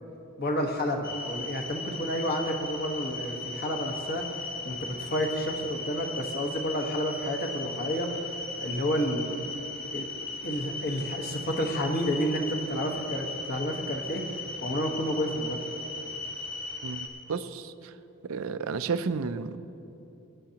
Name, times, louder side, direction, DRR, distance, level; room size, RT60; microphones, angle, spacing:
voice 1, 0.4-4.2 4.6-8.1 8.6-9.5 9.9-10.1 10.4-14.2 14.6-15.6, equal, 45° left, 2 dB, 1.2 m, -30 dB
sound 1, 1.0-17.1, left 3 dB, 20° left, 1.4 m, -37 dB
voice 2, 16.8-17.9 18.2-19.6, right 5 dB, 70° right, 11 dB, 0.5 m, -32 dB
23.5 x 9.3 x 2.9 m, 2.9 s
head